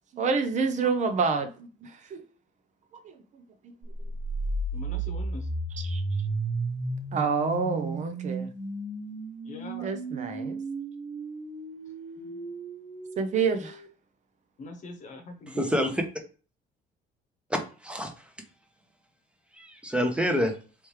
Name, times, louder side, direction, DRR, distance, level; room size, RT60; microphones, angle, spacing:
voice 1, 0.1-2.3 3.0-3.2 5.8-6.0 7.1-8.5 9.8-10.6 12.2-12.3 13.2-13.8, right 5 dB, 45° right, 0.5 m, -28 dB
sound 1, 3.9-13.9, right 2 dB, 60° right, 1.3 m, -34 dB
voice 2, 4.7-5.5 9.4-9.9 14.6-15.6, left 2 dB, 45° left, 0.9 m, -42 dB
voice 3, 15.5-16.0 17.5-18.3 19.5-20.5, equal, 5° right, 0.7 m, -27 dB
3.3 x 3.1 x 3.2 m
cardioid pair, 110°, 17 cm